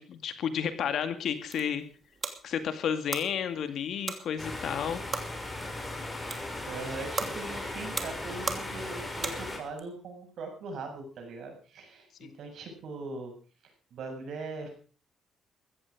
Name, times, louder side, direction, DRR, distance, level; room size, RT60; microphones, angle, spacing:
voice 1, 0.0-1.8 2.4-5.0 12.2-12.3, left 8 dB, 70° left, 10 dB, 2.1 m, -31 dB
sound 1, 1.2-9.8, right 4 dB, 35° right, 2.8 m, -40 dB
sound 2, 4.4-9.6, left 1 dB, 15° left, 5.4 m, -37 dB
voice 2, 6.7-13.3 13.6-14.7, right 3 dB, 70° right, 4 dB, 7.0 m, -40 dB
15.5 x 14.0 x 5.0 m, 0.40 s
cardioid pair, 90°, 0 cm